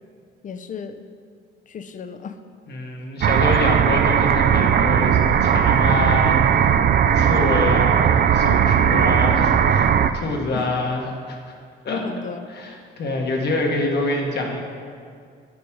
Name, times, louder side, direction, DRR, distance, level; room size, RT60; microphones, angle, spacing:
voice 1, 0.4-1.0 1.7-2.4 10.5-10.8 11.9-12.5, left 5 dB, 40° left, 9 dB, 0.5 m, -33 dB
voice 2, 2.7-6.7 7.1-11.0 11.3-11.4 11.8-12.0 12.6-14.6, left 2 dB, 55° left, 1 dB, 1.4 m, -26 dB
sound 1, 3.2-10.1, right 8 dB, 50° right, 0.4 m, -17 dB
9.3 x 5.1 x 4.8 m, 2.2 s
cardioid pair, 90°, 20 cm